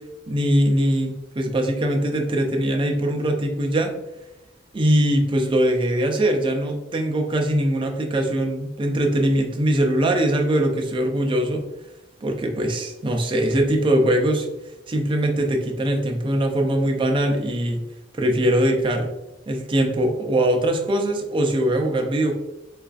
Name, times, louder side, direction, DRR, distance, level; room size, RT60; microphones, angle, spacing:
voice 1, 0.3-3.9 4.7-11.7 12.2-14.5 14.9-17.8 18.1-19.1 19.5-22.3, right 1 dB, 25° right, 3 dB, 0.4 m, -21 dB
4.0 x 2.4 x 2.3 m, 0.97 s
head